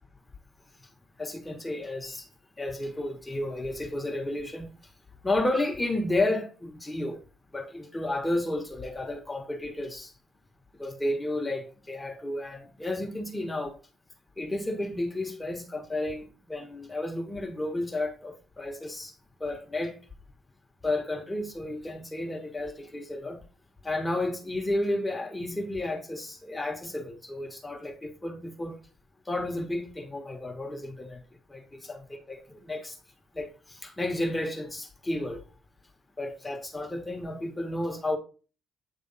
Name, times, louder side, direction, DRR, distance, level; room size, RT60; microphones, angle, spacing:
voice 1, 1.2-2.3 2.6-4.7 5.2-7.2 7.5-10.1 10.8-13.8 14.4-19.1 19.4-20.0 20.8-23.4 23.8-28.8 29.2-31.2 31.5-33.0 33.3-35.4 36.2-38.2, left 1 dB, 15° left, 1.4 m, -32 dB
8.7 x 3.4 x 4.0 m
cardioid pair, 90°, 0 cm